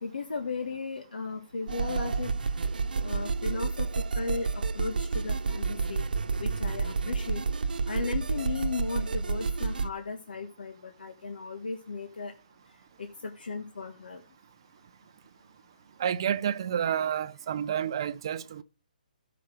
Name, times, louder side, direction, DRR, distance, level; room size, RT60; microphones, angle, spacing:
voice 1, 0.0-2.3 3.0-6.0 6.4-7.4 7.9-12.3 13.0-14.2, left 4 dB, 75° left, 1.5 m, -36 dB
sound 1, 1.7-9.9, right 4 dB, 70° right, 0.9 m, -30 dB
voice 2, 16.0-18.6, right 9 dB, 30° right, 0.5 m, -29 dB
15.0 x 5.8 x 4.9 m
hypercardioid pair, 175°, 5 cm